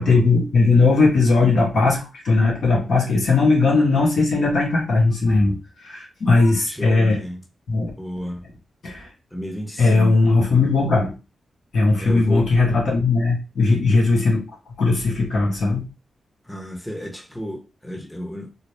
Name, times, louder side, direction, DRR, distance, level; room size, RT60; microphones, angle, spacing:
voice 1, 0.0-7.2 7.7-7.9 8.8-9.1 9.8-11.1 11.7-14.4 14.8-15.8, left 3 dB, 75° left, 2.1 m, -18 dB
voice 2, 6.7-7.4 8.0-8.4 9.3-10.4 12.0-12.5 16.4-18.5, equal, 5° left, 0.9 m, -32 dB
3.9 x 2.0 x 3.4 m
cardioid pair, 60°, 0 cm